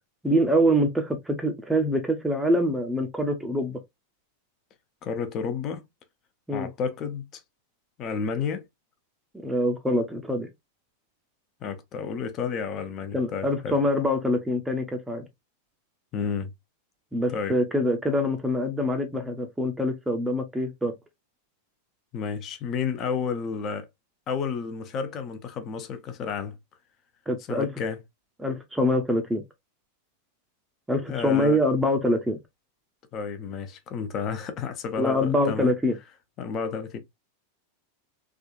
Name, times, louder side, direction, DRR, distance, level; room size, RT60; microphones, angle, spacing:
voice 1, 0.2-3.8 6.5-6.7 9.3-10.5 13.1-15.2 17.1-20.9 27.3-27.7 28.4-29.4 30.9-32.4 35.0-36.0, equal, 5° right, 0.6 m, -25 dB
voice 2, 5.0-5.8 6.5-7.4 8.0-8.7 11.6-13.8 16.1-16.5 17.3-17.6 22.1-23.9 24.3-26.5 27.5-28.0 31.1-31.6 33.1-35.7 36.4-37.0, left 6 dB, 35° left, 0.6 m, -31 dB
3.5 x 2.4 x 2.3 m
figure-of-eight pair, 90°, 0 cm